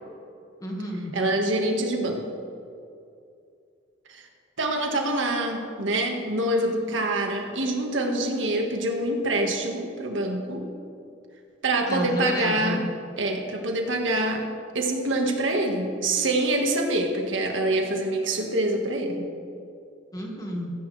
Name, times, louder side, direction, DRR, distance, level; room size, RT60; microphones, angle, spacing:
voice 1, 0.6-1.1 11.9-12.8 20.1-20.7, equal, 20° left, -1 dB, 2.0 m, -31 dB
voice 2, 1.1-2.2 4.1-4.2 4.6-10.7 11.6-12.8 13.2-14.5 14.7-19.3, right 1 dB, 80° right, 2 dB, 1.9 m, -25 dB
16.0 x 15.5 x 3.5 m, 2.5 s
head